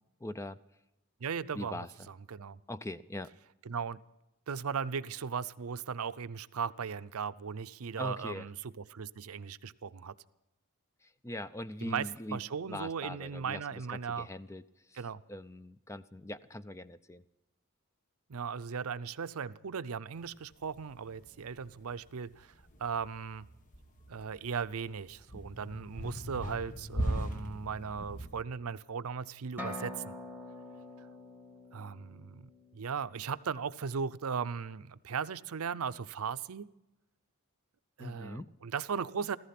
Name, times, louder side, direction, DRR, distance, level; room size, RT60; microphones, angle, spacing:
voice 1, 0.2-0.6 1.5-1.9 2.7-3.3 8.0-8.4 11.2-12.4 12.7-14.6 15.3-17.2 38.0-38.5, left 1 dB, 15° left, 14 dB, 0.4 m, -41 dB
voice 2, 1.2-2.6 3.7-4.0 4.5-10.1 11.8-14.3 14.9-15.2 18.3-22.5 22.8-23.5 24.1-30.1 31.7-36.7 38.0-39.4, right 6 dB, 75° right, 15 dB, 0.6 m, -37 dB
sound 1, 20.2-28.4, equal, 35° left, 1.2 m, -39 dB
sound 2, 29.6-33.3, left 1 dB, 10° right, 1.6 m, -45 dB
15.0 x 15.0 x 5.8 m, 0.93 s
head